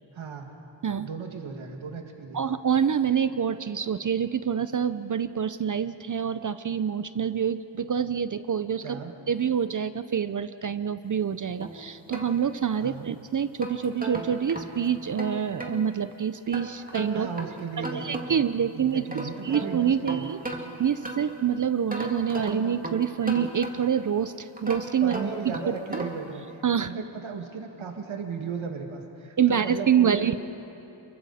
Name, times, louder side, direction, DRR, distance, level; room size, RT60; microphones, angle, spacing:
voice 1, 0.1-0.5 1.0-2.5 8.8-9.1 12.8-13.1 17.1-18.4 18.7-20.3 25.0-30.4, right 5 dB, 85° right, 3 dB, 2.2 m, -36 dB
voice 2, 2.3-9.0 9.3-17.3 17.9-19.0 19.4-20.4 20.8-25.1 25.7-26.0 26.6-26.9 29.4-30.3, right 8 dB, 40° right, 12 dB, 0.5 m, -26 dB
sound 1, 11.6-12.9 13.4-15.8 16.5-18.5 18.9-21.4 21.9-24.1 24.6-26.3, right 2 dB, 20° right, 2.1 m, -36 dB
29.0 x 23.0 x 4.2 m, 2.8 s
wide cardioid pair, 135°, 47 cm